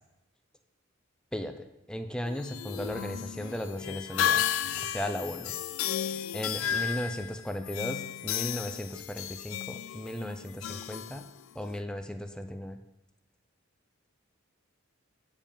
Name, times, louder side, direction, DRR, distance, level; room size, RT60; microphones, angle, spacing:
voice 1, 1.3-4.5 4.8-5.6 6.3-11.2 11.6-12.8, equal, 5° left, 7 dB, 0.4 m, -36 dB
sound 1, 2.2-11.8, left 10 dB, 80° left, 0.4 m, -33 dB
8.5 x 5.3 x 5.2 m, 0.92 s
head